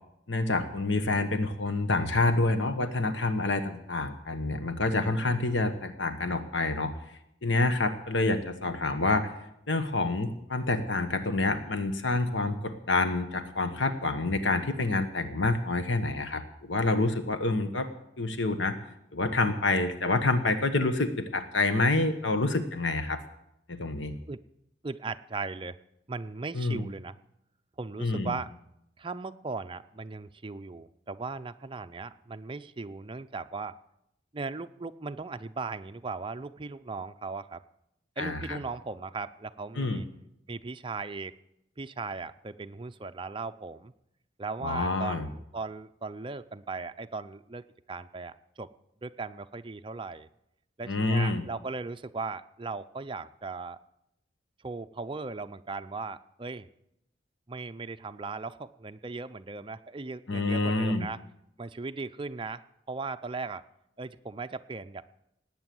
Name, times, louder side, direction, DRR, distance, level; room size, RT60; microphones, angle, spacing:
voice 1, 0.3-6.9 7.4-9.3 9.7-17.9 18.2-18.8 19.1-23.2 23.7-24.1 26.5-26.9 28.0-28.3 38.2-38.6 39.8-40.0 44.6-45.3 50.9-51.4 60.3-61.1, left 2 dB, 80° left, 9 dB, 1.2 m, -27 dB
voice 2, 24.8-25.8 26.1-27.2 27.8-28.5 29.0-33.8 34.3-37.6 38.2-40.1 40.5-41.4 41.8-43.9 44.4-48.7 49.0-50.3 50.8-53.8 54.6-56.7 57.5-61.2 61.6-63.6 64.0-65.1, right 4 dB, 25° right, 10 dB, 0.6 m, -38 dB
18.5 x 9.0 x 7.8 m, 0.81 s
head